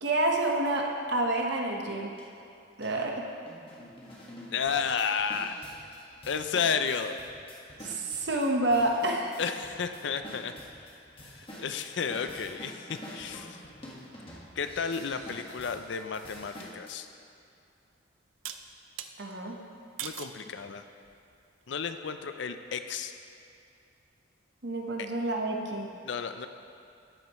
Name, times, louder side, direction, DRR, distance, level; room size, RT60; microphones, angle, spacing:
voice 1, 0.0-2.1 2.8-3.2 7.8-9.3 19.2-19.6 24.6-25.9, right 1 dB, 60° right, 1 dB, 1.1 m, -28 dB
sound 1, 2.2-2.3 2.8-2.9 3.5-16.9, equal, 30° left, 1.5 m, -47 dB
voice 2, 4.5-5.6 6.3-7.2 9.4-10.5 11.3-13.6 14.6-17.1 20.0-20.8 21.7-23.1 26.0-26.5, left 6 dB, 65° left, 8 dB, 0.5 m, -32 dB
sound 2, 17.1-17.2 18.4-19.1 20.0-20.4 21.0-21.4, right 10 dB, 85° right, 0.5 m, -40 dB
12.5 x 9.0 x 3.1 m, 2.5 s
head